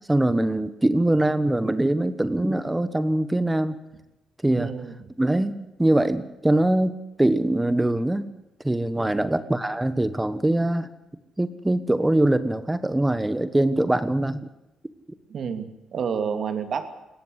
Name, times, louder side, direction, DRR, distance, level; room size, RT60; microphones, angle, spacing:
voice 1, 0.0-3.8 4.4-4.7 5.2-8.3 8.6-10.9 11.4-14.4, right 1 dB, 10° right, 13 dB, 1.3 m, -23 dB
voice 2, 4.6-4.9 9.0-9.2 15.3-16.9, right 6 dB, 55° right, 8 dB, 2.9 m, -30 dB
21.5 x 17.5 x 8.2 m, 0.97 s
cardioid pair, 90°, 0 cm